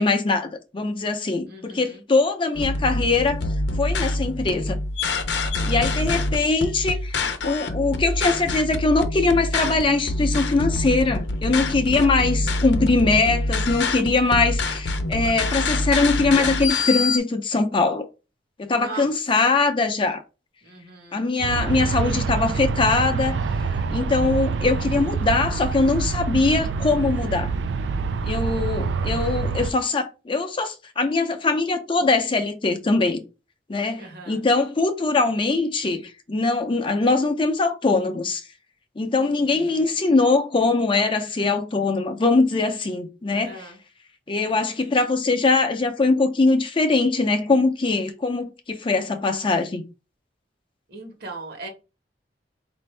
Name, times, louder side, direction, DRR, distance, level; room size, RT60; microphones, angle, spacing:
voice 1, 0.0-3.4 3.8-4.8 5.7-18.1 18.6-20.2 21.1-23.4 23.9-27.5 28.2-33.2 33.7-38.4 39.0-43.7 44.3-49.8, left 3 dB, 30° left, 0.5 m, -22 dB
voice 2, 1.5-2.0 5.7-6.0 12.3-12.6 18.7-19.1 20.6-21.3 28.5-29.1 34.0-34.4 39.5-39.9 43.3-43.8 50.9-51.7, right 3 dB, 60° right, 1.2 m, -40 dB
sound 1, 2.5-17.2, left 2 dB, 85° left, 0.6 m, -26 dB
Aircraft, 21.4-29.7, right 4 dB, 90° right, 0.4 m, -26 dB
4.3 x 2.6 x 3.2 m
head